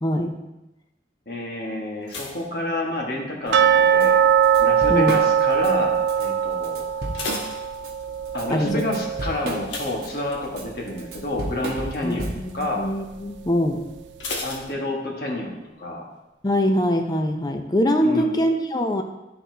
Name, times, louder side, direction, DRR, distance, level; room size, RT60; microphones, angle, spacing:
voice 1, 0.0-0.4 4.9-5.2 8.5-8.8 12.0-14.0 16.4-19.0, equal, 20° left, 5 dB, 0.5 m, -23 dB
voice 2, 1.3-4.2 4.6-6.8 8.3-12.3 12.5-12.8 14.4-16.1 18.0-18.3, left 1 dB, 55° left, -1 dB, 1.4 m, -29 dB
sound 1, 2.0-3.5 3.8-4.3 4.9-5.3 5.6-5.7 6.1-6.2 6.8-8.3 9.6-10.8 11.1-11.4 11.8-11.9 14.2-15.4 15.7-15.8, left 3 dB, 90° left, 1.1 m, -35 dB
sound 2, 3.5-10.4 10.7-10.8 11.3-11.4 11.9-12.0, right 8 dB, 80° right, 0.4 m, -21 dB
Drum kit / Drum, 4.0-4.1 4.4-5.7 6.1-6.3 6.6-7.9 8.3-12.6, right 1 dB, 60° right, 1.0 m, -33 dB
12.0 x 4.2 x 2.7 m, 0.98 s
head